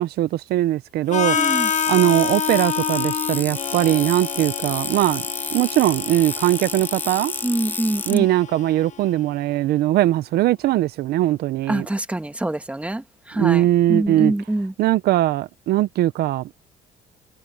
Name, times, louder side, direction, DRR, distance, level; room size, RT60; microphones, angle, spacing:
voice 1, 0.0-5.2 5.5-7.3 8.1-11.9 13.4-14.3 14.8-16.5, right 14 dB, 70° right, 0.6 m, -20 dB
Harmonica, 1.1-9.0, left 7 dB, 45° left, 1.4 m, -28 dB
voice 2, 1.3-1.7 7.4-8.3 11.7-14.7, right 1 dB, 5° right, 1.7 m, -25 dB
sound 1, 1.4-8.2, left 2 dB, 10° left, 0.5 m, -30 dB
cardioid pair, 110°, 17 cm